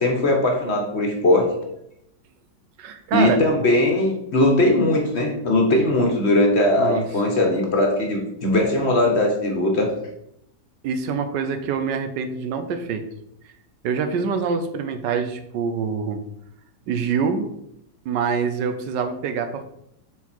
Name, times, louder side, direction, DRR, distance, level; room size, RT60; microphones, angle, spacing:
voice 1, 0.0-1.5 3.1-9.9, left 1 dB, 40° left, 1 dB, 1.4 m, -19 dB
voice 2, 2.8-3.4 6.8-7.0 10.8-13.0 13.8-16.2 16.9-17.5 18.0-19.6, right 6 dB, 90° right, 9 dB, 1.4 m, -25 dB
7.0 x 4.7 x 4.4 m, 0.78 s
omnidirectional pair, 1.8 m